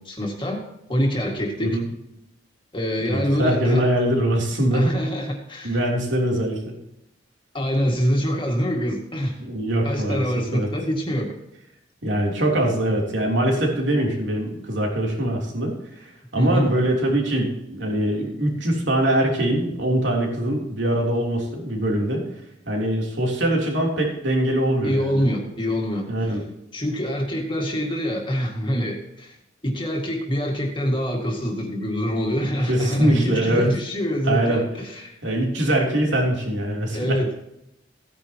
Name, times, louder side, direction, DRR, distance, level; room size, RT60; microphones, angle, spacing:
voice 1, 0.1-0.6 0.9-1.8 2.7-3.8 4.7-5.8 7.5-9.4 9.8-11.3 16.4-16.7 24.8-26.1 26.7-29.4 29.6-35.2 36.9-37.3, equal, 25° left, 0 dB, 2.1 m, -25 dB
voice 2, 3.0-4.9 5.6-6.7 9.4-10.7 12.0-22.2 22.6-25.2 26.1-26.4 32.4-33.7 34.2-34.6 35.2-37.2, right 1 dB, 70° right, -1 dB, 3.3 m, -23 dB
16.0 x 10.0 x 3.0 m, 0.84 s
head